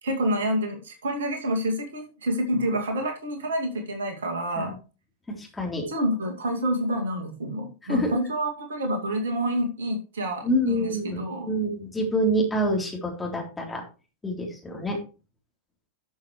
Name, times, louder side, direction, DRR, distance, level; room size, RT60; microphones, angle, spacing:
voice 1, 0.0-4.7 5.9-11.6, equal, 65° right, 4 dB, 2.2 m, -28 dB
voice 2, 5.3-5.9 7.9-8.1 10.4-13.8 14.2-15.0, equal, 10° left, 0 dB, 3.6 m, -27 dB
12.5 x 6.5 x 3.2 m, 0.32 s
figure-of-eight pair, 90°, 0 cm